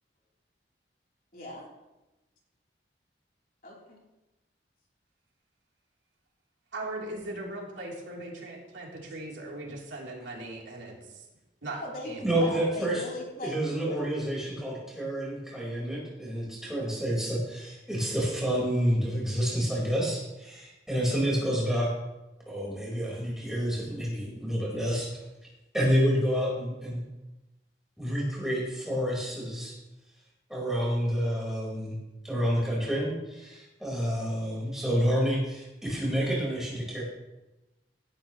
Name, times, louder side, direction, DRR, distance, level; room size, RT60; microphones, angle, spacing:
voice 1, 1.3-1.7 3.6-4.0 11.6-14.5, left 1 dB, 50° left, -3 dB, 3.5 m, -40 dB
voice 2, 6.7-11.3 11.6-12.7, right 2 dB, 80° right, -3 dB, 3.4 m, -39 dB
voice 3, 12.2-13.0 13.4-21.9 22.5-25.1 25.7-27.0 28.0-29.7 30.5-31.9 32.2-37.0, equal, 5° right, -5 dB, 4.6 m, -29 dB
17.5 x 12.5 x 3.1 m, 1.0 s
head